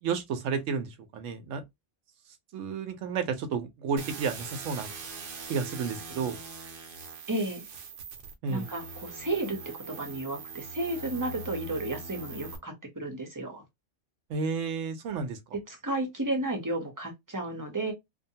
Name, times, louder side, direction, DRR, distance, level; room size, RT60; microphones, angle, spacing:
voice 1, 0.0-1.6 2.5-4.9 5.5-6.4 8.4-8.7 14.3-15.4, right 5 dB, 90° right, 1.0 m, -31 dB
sound 1, 4.0-12.6, right 3 dB, 55° right, 0.7 m, -42 dB
voice 2, 7.3-7.6 8.5-13.6 15.7-17.9, right 2 dB, 20° right, 0.6 m, -33 dB
2.6 x 2.2 x 2.7 m
omnidirectional pair, 1.2 m